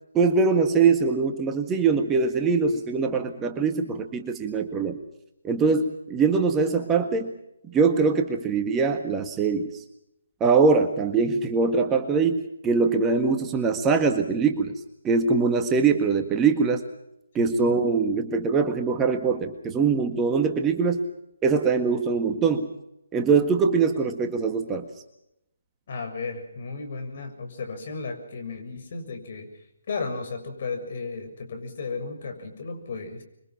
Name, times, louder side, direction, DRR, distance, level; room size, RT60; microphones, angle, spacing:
voice 1, 0.1-5.0 5.4-7.3 7.7-9.8 10.4-14.7 15.0-16.8 17.3-21.0 21.4-22.7 23.1-24.9, right 5 dB, 15° right, 5 dB, 1.7 m, -22 dB
voice 2, 17.4-17.8 25.9-29.5 29.9-33.2, left 4 dB, 50° left, 5 dB, 6.8 m, -34 dB
26.0 x 23.5 x 5.8 m, 0.80 s
figure-of-eight pair, 145°, 0 cm